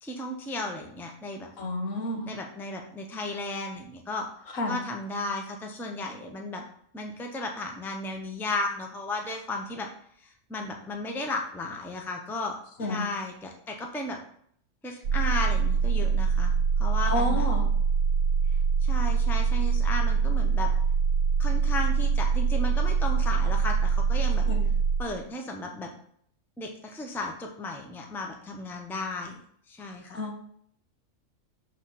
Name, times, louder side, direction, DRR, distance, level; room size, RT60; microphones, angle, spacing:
voice 1, 0.0-1.5 2.3-4.3 4.7-6.6 6.9-9.9 10.2-12.5 12.9-14.2 14.8-17.5 18.8-20.7 21.4-24.5 25.0-25.9 26.6-29.4 29.7-30.2, left 2 dB, ahead, 2 dB, 0.7 m, -34 dB
voice 2, 1.6-2.3 4.5-4.8 12.8-13.1 17.1-17.7 24.5-24.6 30.1-30.4, left 2 dB, 75° left, 1 dB, 1.8 m, -30 dB
sound 1, 15.0-25.1, right 6 dB, 85° right, 1.1 m, -24 dB
6.4 x 3.7 x 6.0 m, 0.63 s
omnidirectional pair, 1.4 m